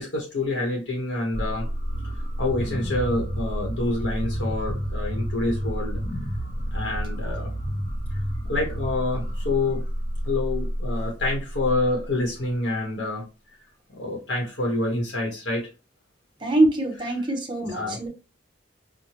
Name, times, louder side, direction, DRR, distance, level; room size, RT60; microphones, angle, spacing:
voice 1, 0.0-1.7 2.4-6.0 6.4-7.5 8.5-9.9 10.2-13.2 13.9-15.7 17.7-18.0, left 2 dB, 70° left, 1.1 m, -27 dB
sound 1, 1.3-12.2, equal, 40° left, 0.8 m, -30 dB
voice 2, 16.4-18.1, right 2 dB, 25° right, 0.8 m, -23 dB
4.8 x 2.2 x 2.8 m
head